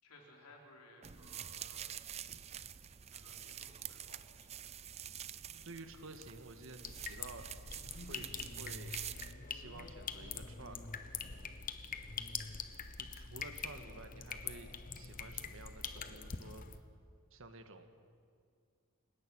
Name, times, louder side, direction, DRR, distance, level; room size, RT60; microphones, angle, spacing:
voice 1, 0.0-1.9 3.1-4.5 12.0-12.2, left 2 dB, 80° left, -1 dB, 4.4 m, -60 dB
sound 1, 1.0-9.3, right 10 dB, 30° right, 0.5 m, -47 dB
voice 2, 5.6-7.5 8.0-9.0 9.5-10.8 13.0-16.6 17.3-17.9, right 2 dB, 60° right, 7 dB, 1.7 m, -52 dB
sound 2, 6.8-16.8, left 6 dB, 40° left, 1.0 m, -44 dB
30.0 x 17.5 x 6.4 m, 2.2 s
head